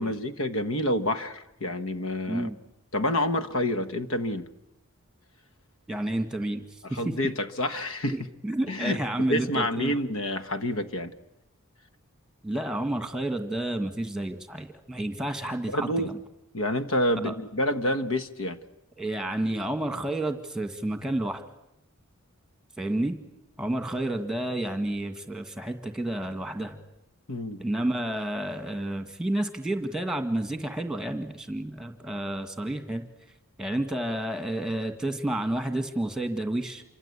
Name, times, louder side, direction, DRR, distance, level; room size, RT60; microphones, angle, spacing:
voice 1, 0.0-2.5 2.9-4.5 6.8-8.2 8.7-9.0 9.3-11.1 15.7-16.1 16.5-18.6 27.3-27.6, left 1 dB, 70° left, 9 dB, 1.3 m, -28 dB
voice 2, 5.9-6.6 6.9-7.1 8.1-10.0 12.4-16.2 17.2-17.3 19.0-21.4 22.8-23.2 23.6-26.8 27.6-33.0 33.6-36.8, right 1 dB, 5° right, 7 dB, 1.8 m, -30 dB
27.5 x 24.5 x 8.4 m, 0.87 s
head